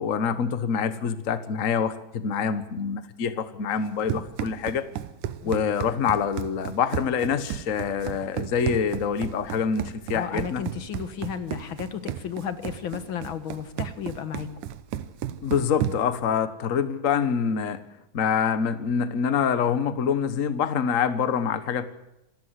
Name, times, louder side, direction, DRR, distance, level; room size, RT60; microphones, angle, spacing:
voice 1, 0.0-4.8 5.4-10.6 15.4-17.9 18.1-21.8, left 7 dB, 85° left, 12 dB, 0.7 m, -26 dB
Run, 3.7-16.2, right 11 dB, 90° right, 2.5 m, -34 dB
voice 2, 10.1-14.5, left 8 dB, 50° left, 11 dB, 1.8 m, -33 dB
27.0 x 14.0 x 8.2 m, 0.89 s
omnidirectional pair, 3.4 m